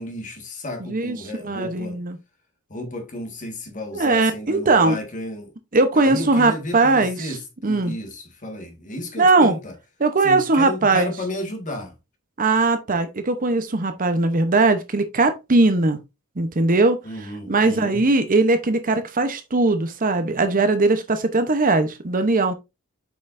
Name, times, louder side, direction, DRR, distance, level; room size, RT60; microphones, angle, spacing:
voice 1, 0.0-2.0 2.7-5.5 5.9-9.7 10.2-11.9 17.0-18.0, left 1 dB, 35° left, 1.7 m, -33 dB
voice 2, 1.4-2.2 3.9-5.0 5.7-7.3 7.6-7.9 9.2-9.5 10.0-11.1 12.4-16.0 16.4-17.0 17.5-22.5, right 3 dB, 40° right, 0.8 m, -19 dB
7.7 x 5.5 x 2.6 m
head